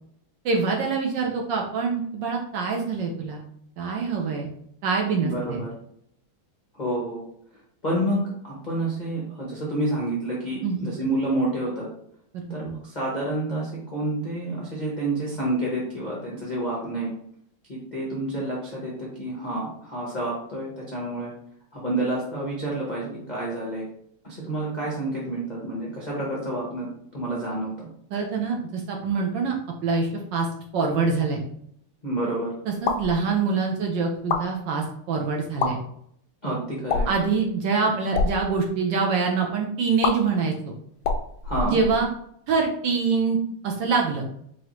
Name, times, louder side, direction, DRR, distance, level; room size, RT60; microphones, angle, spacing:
voice 1, 0.4-3.4 3.8-4.5 4.8-5.6 10.6-10.9 12.5-12.6 28.1-29.6 29.8-30.5 30.7-31.4 32.7-35.8 37.0-40.7 41.6-42.1 42.5-43.4 43.6-44.3, right 4 dB, 70° right, 1 dB, 1.1 m, -25 dB
voice 2, 5.2-5.7 6.7-7.2 7.8-11.9 12.5-17.1 17.7-21.3 21.7-23.8 24.2-27.9 32.0-32.5 36.4-37.1 41.4-41.8, right 1 dB, 60° left, -5 dB, 0.4 m, -29 dB
sound 1, 32.8-33.1 34.1-34.4 35.5-35.7 36.9-37.2 38.0-38.3 40.0-40.1 41.0-42.2, left 5 dB, 80° left, 0.9 m, -25 dB
4.7 x 2.7 x 3.0 m, 0.68 s
omnidirectional pair, 2.4 m